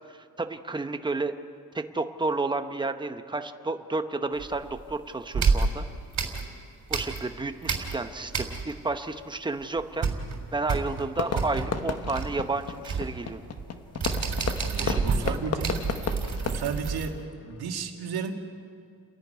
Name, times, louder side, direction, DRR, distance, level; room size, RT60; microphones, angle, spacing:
voice 1, 0.1-1.3 1.7-5.8 6.9-10.1 10.5-13.4 14.8-15.3, right 3 dB, 10° right, 8 dB, 0.8 m, -31 dB
sound 1, 4.4-4.9 5.3-7.4 7.6-8.9 9.2-9.3 9.6-17.1, right 4 dB, 45° right, 3.3 m, -29 dB
Fireworks, 11.1-17.7, left 6 dB, 40° left, 1.1 m, -34 dB
voice 2, 14.7-15.7 16.4-18.3, right 6 dB, 80° right, 3 dB, 2.2 m, -33 dB
30.0 x 11.0 x 9.3 m, 2.4 s
cardioid pair, 155°, 38 cm